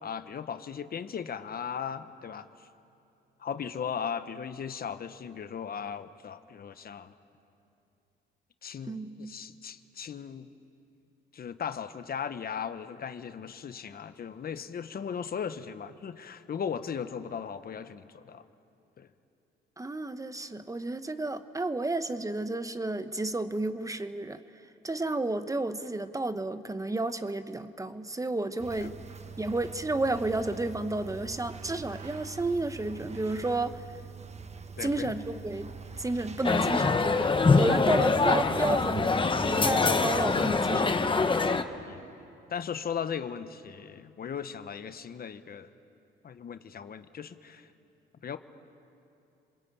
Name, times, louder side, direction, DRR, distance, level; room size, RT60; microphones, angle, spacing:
voice 1, 0.0-2.5 3.4-7.1 8.6-10.5 11.3-18.4 19.0-19.1 28.8-28.9 34.8-35.1 41.9-42.0 42.5-45.7 46.2-47.7 48.2-48.4, left 7 dB, 50° left, 11 dB, 1.1 m, -37 dB
voice 2, 8.8-9.4 19.8-24.4 24.8-29.0 29.4-33.8 34.8-39.1 39.5-41.3, right 2 dB, 15° right, 11 dB, 1.0 m, -32 dB
sound 1, 28.6-40.8, right 5 dB, 35° right, 1.3 m, -44 dB
sound 2, 36.4-41.6, left 4 dB, 25° left, 1.2 m, -24 dB
29.0 x 21.5 x 8.8 m, 2.7 s
cardioid pair, 90°, 20 cm